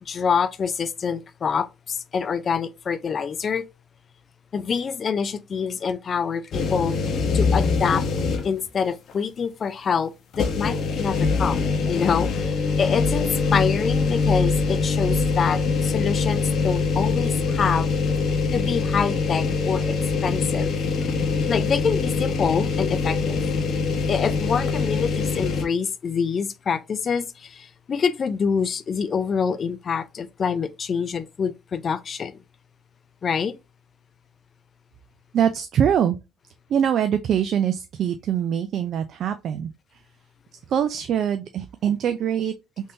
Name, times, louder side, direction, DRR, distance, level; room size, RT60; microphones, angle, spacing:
voice 1, 0.0-3.7 4.5-7.0 7.3-8.0 8.4-17.9 18.5-20.0 20.2-20.7 21.5-23.4 24.1-32.4 33.2-33.6, left 6 dB, 40° left, 0.4 m, -26 dB
sound 1, 6.5-8.7 9.1-9.2 10.3-25.7, left 4 dB, 60° left, 0.8 m, -23 dB
voice 2, 35.3-36.2 36.7-39.7 40.7-42.5, right 9 dB, 60° right, 0.3 m, -23 dB
3.5 x 2.6 x 2.7 m
cardioid pair, 90°, 0 cm